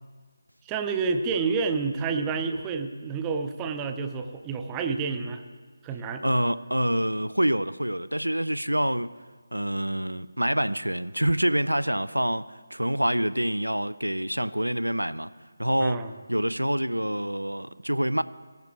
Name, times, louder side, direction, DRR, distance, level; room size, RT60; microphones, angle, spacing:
voice 1, 0.7-5.4 5.8-6.2 15.8-16.1, right 5 dB, 15° right, 0.5 m, -29 dB
voice 2, 6.2-9.1 9.5-15.3 15.6-18.2, right 1 dB, 85° right, 0.4 m, -26 dB
17.5 x 10.5 x 3.4 m
figure-of-eight pair, 155°, 0 cm